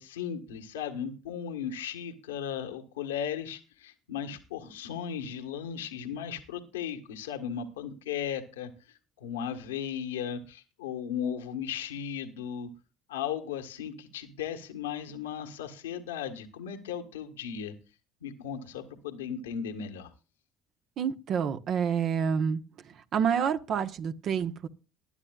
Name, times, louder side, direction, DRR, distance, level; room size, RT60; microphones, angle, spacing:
voice 1, 0.0-12.7 13.1-17.7 18.2-20.1, left 8 dB, 85° left, 5 dB, 1.6 m, -36 dB
voice 2, 21.0-22.6 23.1-24.7, right 7 dB, 55° right, 9 dB, 1.1 m, -28 dB
20.0 x 11.0 x 2.4 m, 0.33 s
hypercardioid pair, 65°, 0 cm